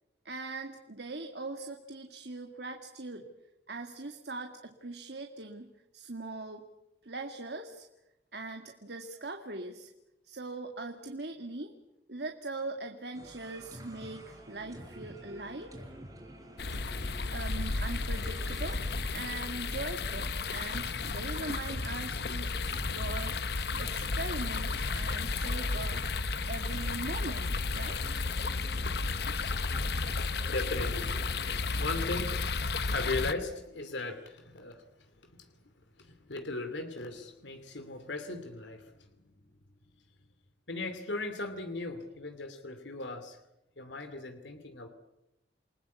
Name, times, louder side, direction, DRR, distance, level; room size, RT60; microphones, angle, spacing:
voice 1, 0.2-3.3 3.7-6.6 7.0-7.9 8.3-9.9 10.2-11.7 12.1-15.7 17.3-18.8 19.1-23.4 23.8-26.1 26.5-28.0, right 2 dB, 70° right, 4 dB, 2.1 m, -41 dB
sound 1, 13.1-32.2, right 1 dB, 20° right, 6.0 m, -49 dB
sound 2, 16.6-33.3, left 3 dB, 60° left, 0.9 m, -33 dB
voice 2, 30.5-34.8 35.3-35.5 36.0-39.1 40.7-43.4 43.8-44.9, left 2 dB, 90° left, 8 dB, 2.7 m, -38 dB
29.5 x 20.0 x 8.4 m, 0.93 s
head